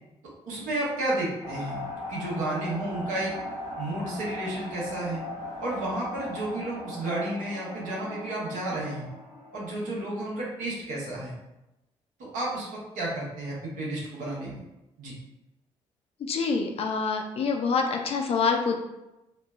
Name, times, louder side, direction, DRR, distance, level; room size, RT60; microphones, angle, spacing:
voice 1, 0.5-1.8 2.1-3.3 3.8-5.2 5.6-9.1 9.5-11.3 12.2-14.6 15.0-15.1, right 1 dB, 60° right, -5 dB, 0.9 m, -32 dB
sound 1, 1.4-10.4, left 1 dB, 85° left, 0.8 m, -39 dB
voice 2, 16.2-18.8, left 5 dB, 40° left, 3 dB, 0.4 m, -26 dB
3.1 x 2.0 x 2.3 m, 0.95 s
figure-of-eight pair, 40°, 15 cm